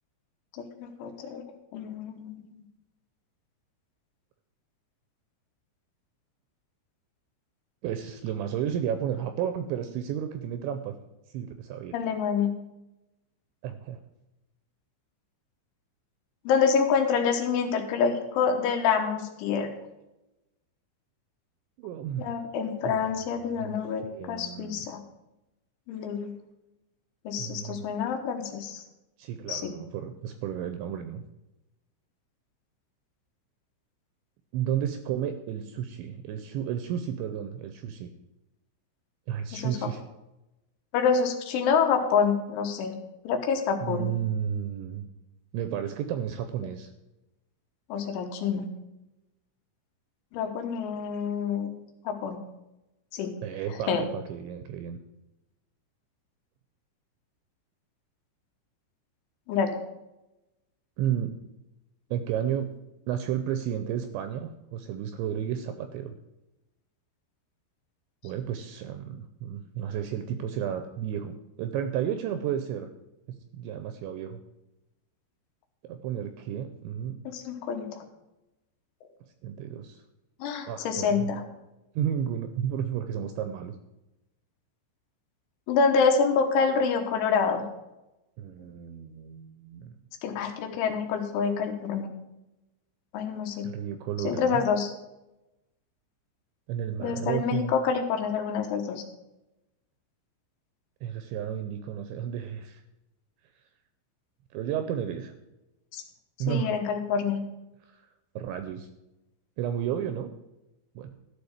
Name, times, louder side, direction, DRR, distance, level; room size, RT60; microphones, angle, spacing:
voice 1, 0.5-1.5 1.7-2.5 11.9-12.5 16.5-19.7 22.2-25.0 25.9-26.3 27.3-28.8 29.5-29.7 39.5-39.8 40.9-43.0 43.3-44.1 47.9-48.7 50.3-51.7 52.1-52.4 53.1-53.4 53.9-54.1 59.5-59.7 77.3-77.9 80.4-81.4 85.7-87.7 90.2-92.1 93.1-93.7 94.2-94.9 97.0-99.0 105.9-106.0 106.5-107.4, left 6 dB, 75° left, 4 dB, 3.5 m, -27 dB
voice 2, 7.8-11.0 11.3-11.9 13.6-14.0 21.8-22.4 22.8-22.9 23.6-24.9 27.4-27.9 29.2-31.2 34.5-38.1 39.3-40.0 43.8-45.1 45.5-46.9 53.4-55.0 61.0-61.3 62.1-62.7 63.1-66.1 68.2-72.9 73.3-74.4 75.8-77.2 79.4-80.0 80.7-81.3 82.0-83.8 88.4-89.9 93.6-94.6 96.7-97.7 101.0-102.8 104.5-105.3 106.4-106.7 107.9-108.0 108.4-108.9 109.6-110.3 111.0-111.1, right 9 dB, 80° right, 8 dB, 2.7 m, -32 dB
13.5 x 5.2 x 8.2 m, 0.96 s
omnidirectional pair, 5.9 m